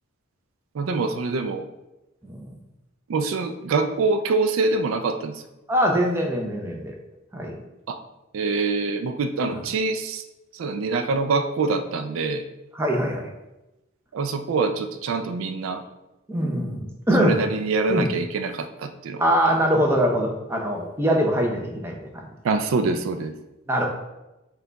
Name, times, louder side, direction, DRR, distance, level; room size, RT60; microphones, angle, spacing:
voice 1, 0.7-1.6 3.1-5.4 7.9-8.0 8.3-10.2 10.5-12.4 14.1-15.8 17.2-19.2 19.5-19.6 22.4-23.3, right 3 dB, 75° right, 8 dB, 0.4 m, -25 dB
voice 2, 5.7-6.9 7.3-7.6 9.5-9.6 12.7-13.3 16.3-17.4 17.9-18.1 19.2-22.3 23.7-23.9, equal, 10° right, 0 dB, 0.5 m, -23 dB
5.7 x 2.3 x 3.9 m, 0.98 s
head